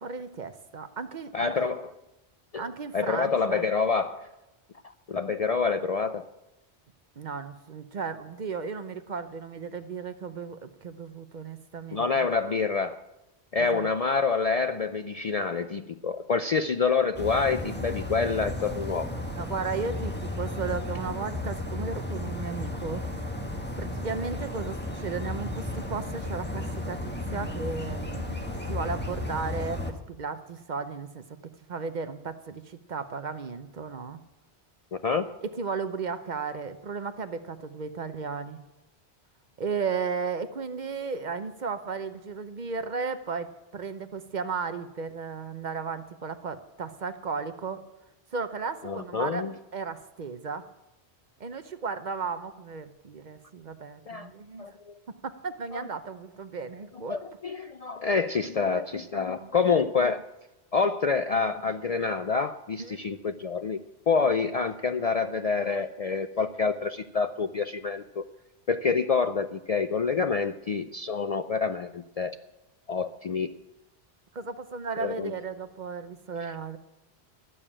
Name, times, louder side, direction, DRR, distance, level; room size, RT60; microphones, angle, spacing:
voice 1, 0.0-1.8 2.5-3.6 7.2-12.3 13.6-13.9 19.3-23.0 23.8-34.2 35.4-38.6 39.6-47.8 48.3-49.4 49.7-50.6 51.4-54.7 55.2-57.2 59.1-59.5 62.8-63.0 74.3-76.8, right 5 dB, 50° right, 10 dB, 0.8 m, -35 dB
voice 2, 1.3-1.9 2.5-4.3 5.1-6.3 11.9-13.0 13.5-19.1 34.9-35.3 48.8-49.5 54.1-54.3 54.6-54.9 55.7-55.8 57.1-60.2 60.7-63.8 64.1-68.2 68.7-72.4 72.9-73.5 75.0-75.3, left 5 dB, 50° left, 9 dB, 0.4 m, -27 dB
sound 1, 17.1-29.9, left 1 dB, 10° left, 1.3 m, -34 dB
12.5 x 7.0 x 8.6 m, 0.98 s
omnidirectional pair, 1.1 m